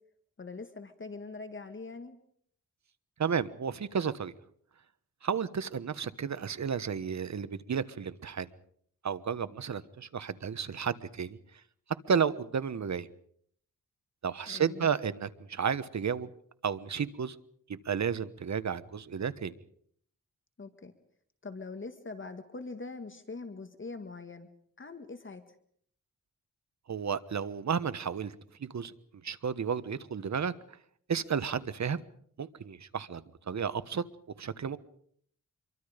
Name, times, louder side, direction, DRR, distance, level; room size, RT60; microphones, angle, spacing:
voice 1, 0.4-2.2 14.5-14.9 20.6-20.9 21.4-24.5 24.8-25.4, left 3 dB, 40° left, 8 dB, 1.9 m, -43 dB
voice 2, 3.2-4.3 5.2-8.5 9.0-11.4 12.1-13.1 14.2-16.3 16.6-17.4 17.7-19.5 26.9-28.3 28.6-28.9 29.2-30.5 31.1-32.0 32.4-34.0 34.4-34.8, right 7 dB, 60° right, 14 dB, 1.3 m, -32 dB
26.5 x 23.5 x 5.2 m, 0.64 s
cardioid pair, 75°, 32 cm